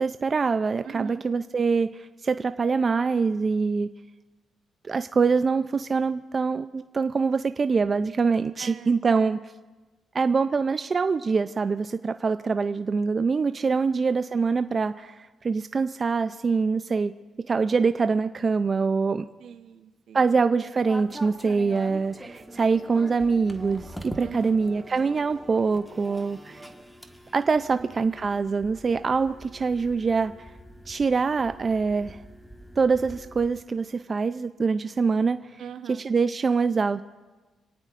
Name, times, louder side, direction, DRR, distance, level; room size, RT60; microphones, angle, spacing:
voice 1, 0.0-3.9 4.8-9.4 10.1-17.1 17.5-19.3 20.1-26.6 27.3-30.3 30.9-32.2 32.8-35.4 35.9-37.0, right 4 dB, 35° right, 10 dB, 0.4 m, -24 dB
voice 2, 0.8-1.2 8.6-9.4 13.7-14.2 19.4-20.3 24.2-24.7 27.7-28.1 35.6-36.1, right 8 dB, 70° right, 9 dB, 0.9 m, -41 dB
sound 1, 20.9-33.5, equal, ahead, 1.5 m, -45 dB
sound 2, 21.7-26.8, right 2 dB, 20° right, 4.4 m, -48 dB
26.5 x 18.0 x 2.5 m, 1.3 s
cardioid pair, 90°, 0 cm